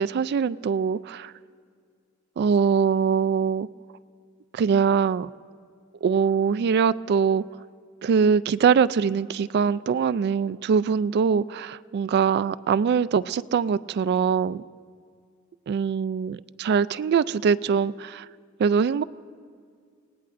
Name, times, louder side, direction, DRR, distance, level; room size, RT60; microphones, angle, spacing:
voice 1, 0.0-1.3 2.4-3.7 4.5-5.3 6.0-7.4 8.0-14.6 15.7-18.3 18.6-19.0, right 6 dB, 50° right, 16 dB, 0.3 m, -23 dB
27.5 x 18.0 x 2.5 m, 2.1 s
head